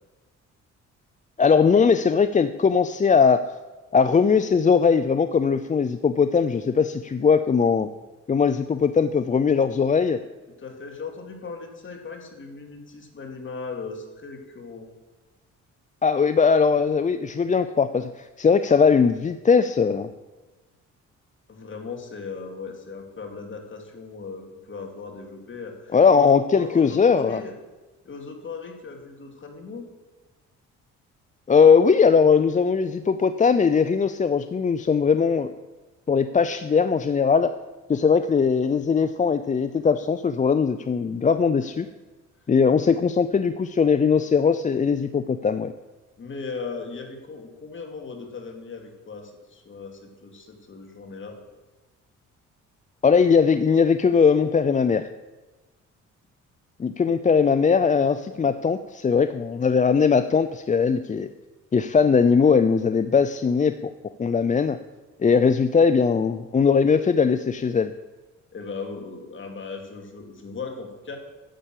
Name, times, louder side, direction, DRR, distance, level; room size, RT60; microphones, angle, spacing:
voice 1, 1.4-3.4 3.9-7.9 8.3-10.2 16.0-20.1 25.9-27.4 31.5-35.5 36.1-37.5 37.9-41.9 42.5-45.7 53.0-55.1 56.8-61.3 61.7-63.7 64.2-64.8 65.2-67.9, left 5 dB, 25° left, 11 dB, 0.5 m, -20 dB
voice 2, 10.6-14.9 21.5-27.5 28.0-29.9 46.2-51.4 68.5-71.2, left 4 dB, 40° left, 3 dB, 2.5 m, -38 dB
10.0 x 8.1 x 7.5 m, 1.2 s
cardioid pair, 90°, 30 cm